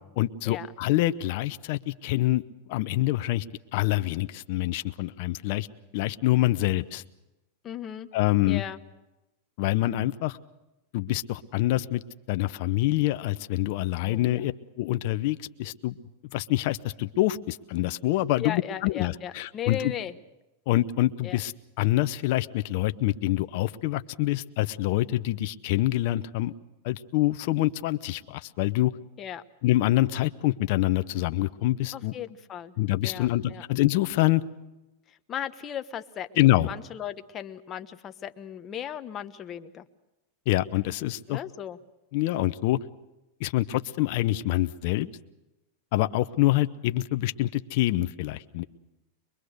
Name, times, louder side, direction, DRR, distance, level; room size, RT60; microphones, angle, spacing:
voice 1, 0.2-2.4 2.7-3.4 3.7-5.7 5.9-7.0 8.1-8.6 9.6-10.4 10.9-12.0 12.3-15.9 16.3-19.9 20.7-26.5 26.8-28.9 29.6-32.1 32.8-34.4 36.4-36.7 40.5-41.4 42.1-42.8 43.4-45.1 45.9-48.6, left 16 dB, 60° left, 11 dB, 0.8 m, -26 dB
voice 2, 7.6-8.1 8.5-8.8 13.9-14.5 18.4-20.1 21.2-21.4 29.2-29.4 31.9-32.8 33.0-33.6 35.1-39.8 41.3-41.8, left 9 dB, 30° left, 9 dB, 1.1 m, -37 dB
23.5 x 22.5 x 6.6 m, 0.99 s
hypercardioid pair, 115°, 0 cm